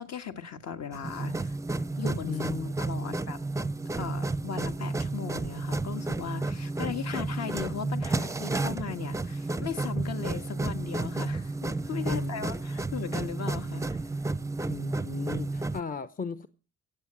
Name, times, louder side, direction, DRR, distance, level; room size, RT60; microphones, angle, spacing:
voice 1, 0.0-1.6 2.0-2.4 2.8-3.4 3.9-13.9, left 7 dB, 55° left, 1.7 m, -37 dB
sound 1, 0.9-15.8, right 2 dB, 10° right, 0.6 m, -32 dB
voice 2, 2.3-3.2 12.1-12.5 14.7-16.5, left 5 dB, 30° left, 0.8 m, -36 dB
15.5 x 8.0 x 7.4 m
cardioid pair, 90°, 30 cm